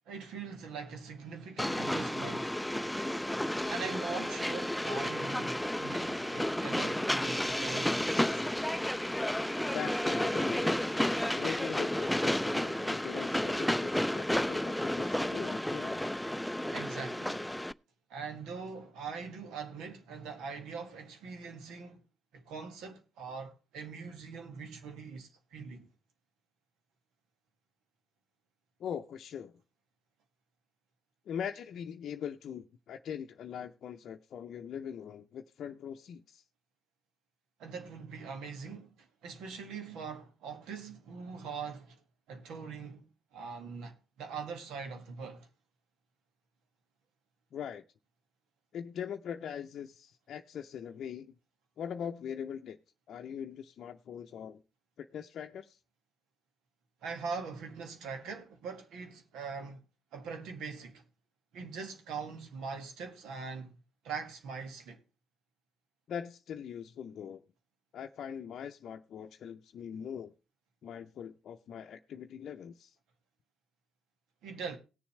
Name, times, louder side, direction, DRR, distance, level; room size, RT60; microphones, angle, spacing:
voice 1, 0.1-2.6 3.7-8.4 16.7-17.5 18.1-22.0 22.3-25.9 37.6-42.0 42.3-45.5 57.0-59.8 60.1-61.0 61.5-63.7 64.0-65.0 74.4-74.8, right 5 dB, 80° right, 1.9 m, -42 dB
Train, 1.6-17.7, left 1 dB, 5° left, 0.4 m, -32 dB
voice 2, 9.7-10.9 11.3-16.0 28.8-29.5 31.3-36.4 47.5-47.8 48.7-51.3 51.8-52.8 53.1-54.6 55.0-55.8 66.1-67.4 67.9-70.3 70.8-72.9, left 8 dB, 65° left, 0.6 m, -41 dB
18.0 x 7.1 x 3.2 m
supercardioid pair, 50°, 0 cm